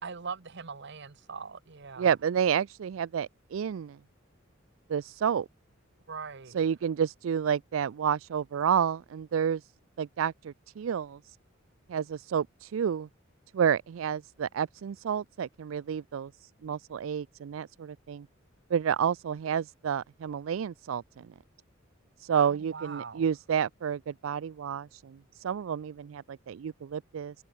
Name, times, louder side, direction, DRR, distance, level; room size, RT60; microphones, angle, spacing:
voice 1, 0.0-2.1 6.1-6.6 22.4-23.3, right 5 dB, 60° right, 1.0 m, -41 dB
voice 2, 2.0-4.0 4.9-5.5 6.5-9.6 10.0-11.4 11.9-13.1 13.5-16.3 16.6-18.3 18.7-21.3 22.2-27.3, right 8 dB, 75° right, 0.4 m, -30 dB
head